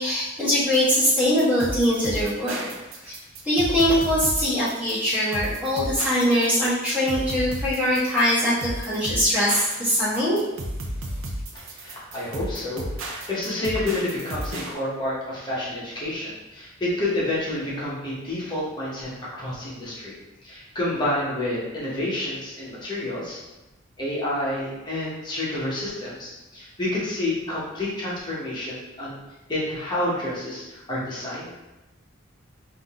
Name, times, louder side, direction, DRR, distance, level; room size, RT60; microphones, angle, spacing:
voice 1, 0.0-2.7 3.0-3.2 3.4-10.4, equal, 10° right, -11 dB, 1.4 m, -22 dB
sound 1, 0.7-14.7, right 1 dB, 75° right, 0.7 m, -33 dB
voice 2, 11.5-20.1 20.4-23.4 24.0-29.2 29.5-31.5, left 1 dB, 20° left, -7 dB, 1.1 m, -29 dB
3.8 x 2.7 x 3.6 m, 1.0 s
head